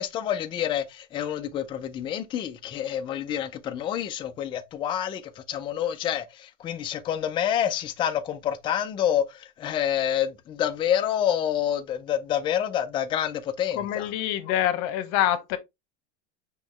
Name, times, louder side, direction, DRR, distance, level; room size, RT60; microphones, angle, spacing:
voice 1, 0.0-14.1, left 10 dB, 15° left, 0.3 m, -28 dB
voice 2, 13.7-15.6, left 12 dB, 45° left, 1.0 m, -26 dB
5.5 x 3.1 x 3.0 m
supercardioid pair, 130°, 36 cm